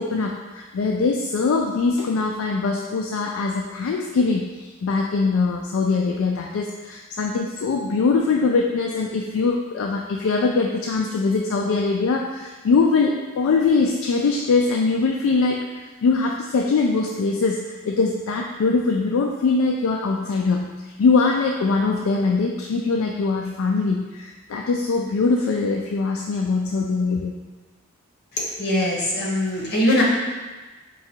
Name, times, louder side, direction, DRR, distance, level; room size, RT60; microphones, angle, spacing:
voice 1, 0.0-27.3, left 4 dB, 65° left, 1 dB, 0.3 m, -22 dB
voice 2, 28.6-30.0, left 1 dB, 50° left, -4 dB, 1.1 m, -21 dB
4.7 x 2.3 x 4.4 m, 1.2 s
head